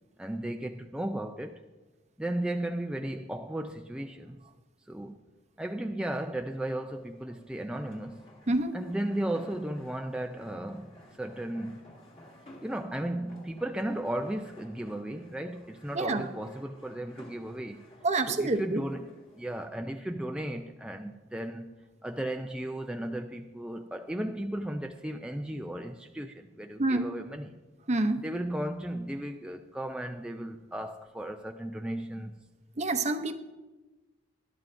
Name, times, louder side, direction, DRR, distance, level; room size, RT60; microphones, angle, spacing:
voice 1, 0.2-1.6 2.2-4.4 4.9-5.2 5.6-8.2 8.7-11.8 12.6-17.8 18.3-21.7 22.0-27.5 28.2-32.4, right 1 dB, 5° right, 0.4 m, -35 dB
sound 1, 6.0-19.7, left 1 dB, 30° left, 1.9 m, -56 dB
voice 2, 8.5-8.8 15.9-16.3 18.0-18.8 26.8-27.1 27.9-28.2 32.8-33.3, right 2 dB, 40° right, 0.7 m, -27 dB
19.5 x 12.0 x 2.6 m
head